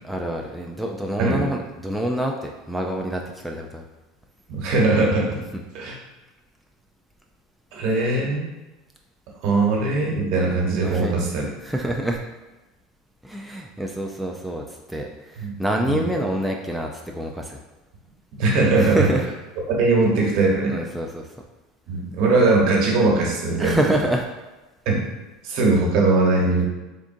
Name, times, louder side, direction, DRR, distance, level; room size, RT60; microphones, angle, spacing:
voice 1, 0.0-3.8 10.8-11.1 11.6-12.2 13.2-14.6 14.9-16.9 17.2-17.6 18.8-19.2 20.7-21.2 23.6-24.3, right 1 dB, ahead, 0 dB, 0.4 m, -26 dB
voice 2, 1.2-1.5 4.5-5.4 5.7-5.9 7.7-8.5 9.4-11.5 15.4-15.5 15.9-16.0 18.4-19.1 19.7-20.8 21.9-23.9 24.8-25.0 25.4-26.7, right 3 dB, 60° right, -2 dB, 1.1 m, -20 dB
3.7 x 3.6 x 2.6 m, 1.1 s
supercardioid pair, 100°, 0 cm